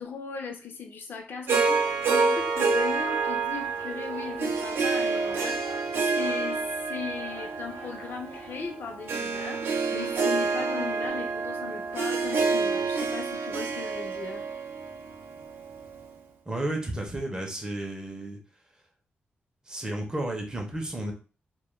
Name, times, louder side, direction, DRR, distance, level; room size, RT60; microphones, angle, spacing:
voice 1, 0.0-14.5, left 5 dB, 60° left, 4 dB, 0.5 m, -38 dB
Singing, 1.4-11.1, left 2 dB, 80° left, 0.9 m, -49 dB
Harp, 1.5-15.9, right 4 dB, 80° right, 0.4 m, -28 dB
voice 2, 16.5-18.4 19.7-21.1, right 1 dB, 20° right, 1 dB, 0.5 m, -32 dB
2.2 x 2.1 x 3.0 m, 0.35 s
wide cardioid pair, 155°, 4 cm